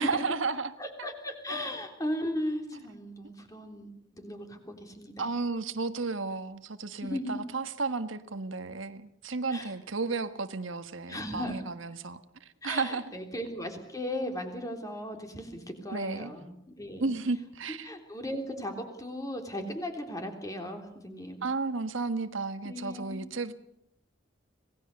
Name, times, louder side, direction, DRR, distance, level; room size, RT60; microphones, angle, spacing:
voice 1, 0.0-0.7 5.2-13.1 15.9-16.3 17.0-17.9 21.4-23.5, right 4 dB, 90° right, 9 dB, 1.5 m, -33 dB
voice 2, 0.8-5.3 7.0-7.5 9.5-9.7 11.1-11.5 12.6-17.1 17.8-21.4 22.6-23.2, equal, 20° left, 4 dB, 3.5 m, -37 dB
26.5 x 18.5 x 6.7 m, 0.74 s
head